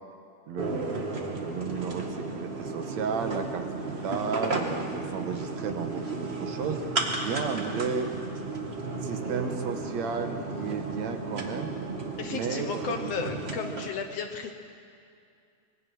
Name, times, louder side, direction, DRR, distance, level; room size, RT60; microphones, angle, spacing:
voice 1, 0.5-6.8 7.2-8.1 9.0-11.8 12.3-13.0, right 5 dB, 65° right, 6 dB, 2.3 m, -33 dB
sound 1, 0.6-13.9, right 3 dB, 30° right, 1.3 m, -34 dB
voice 2, 12.2-14.5, left 6 dB, 65° left, 5 dB, 1.7 m, -34 dB
25.0 x 20.0 x 6.2 m, 2.4 s
omnidirectional pair, 3.6 m